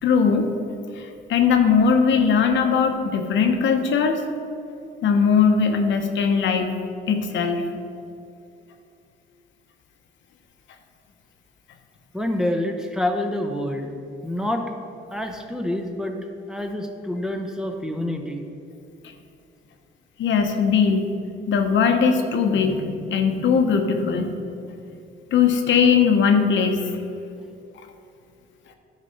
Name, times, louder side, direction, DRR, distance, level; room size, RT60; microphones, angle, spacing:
voice 1, 0.0-0.5 1.0-4.2 5.0-6.8 7.1-7.6 20.2-21.1 21.5-24.4 25.3-26.9, left 6 dB, 70° left, 5 dB, 0.9 m, -20 dB
voice 2, 12.1-14.0 14.2-14.6 15.1-16.2 16.5-18.4 27.3-27.4, left 1 dB, 5° right, 3 dB, 0.8 m, -27 dB
9.8 x 4.2 x 5.6 m, 2.6 s
cardioid pair, 90°, 20 cm